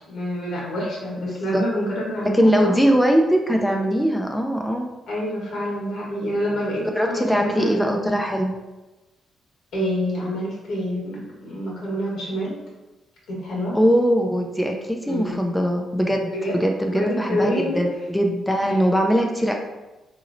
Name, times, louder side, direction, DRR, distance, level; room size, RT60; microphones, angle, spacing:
voice 1, 0.1-2.7 5.1-7.9 9.7-12.6 13.3-13.8 15.1-15.4 16.3-16.6 16.9-17.8 18.6-18.8, equal, 75° left, -4 dB, 1.3 m, -27 dB
voice 2, 1.3-1.6 2.3-4.9 6.9-8.5 13.7-19.5, equal, 5° left, 1 dB, 0.4 m, -21 dB
3.9 x 3.0 x 2.5 m, 1.1 s
cardioid pair, 105°, 0 cm